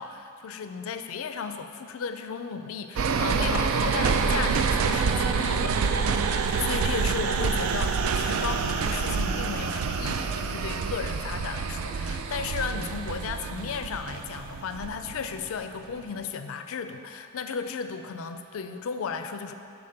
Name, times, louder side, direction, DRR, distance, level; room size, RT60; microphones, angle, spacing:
voice 1, 0.0-5.8 6.6-19.5, left 6 dB, 70° left, 8 dB, 0.4 m, -35 dB
sound 1, 3.0-15.5 15.9-16.0, right 5 dB, 75° right, 0.3 m, -27 dB
6.4 x 4.0 x 5.8 m, 2.6 s
head